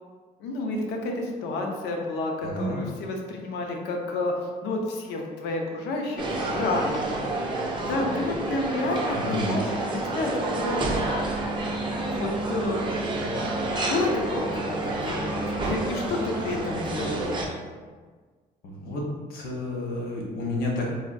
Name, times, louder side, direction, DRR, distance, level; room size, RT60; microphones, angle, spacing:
voice 1, 0.4-4.3 4.6-7.4 7.9-9.7 10.1-11.2 12.0-12.8 13.9-17.3, left 2 dB, 85° left, 1 dB, 0.6 m, -30 dB
voice 2, 2.4-2.8 9.2-9.5 13.2-13.4 18.7-19.0 19.3-21.0, left 1 dB, 60° left, -2 dB, 0.8 m, -30 dB
sound 1, 6.2-17.5, right 2 dB, 30° right, 0.5 m, -29 dB
3.4 x 2.2 x 2.5 m, 1.5 s
cardioid pair, 110°, 17 cm